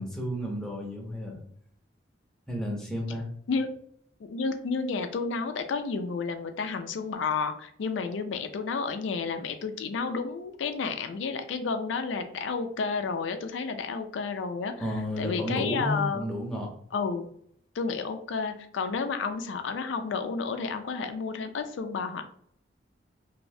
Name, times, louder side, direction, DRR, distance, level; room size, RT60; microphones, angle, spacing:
voice 1, 0.0-1.4 2.5-3.3 14.8-16.7, left 1 dB, 5° left, -2 dB, 0.7 m, -32 dB
voice 2, 4.2-14.8 15.2-16.3 16.9-17.3 17.7-22.2, left 4 dB, 80° left, 7 dB, 0.4 m, -31 dB
2.7 x 2.6 x 3.2 m, 0.65 s
head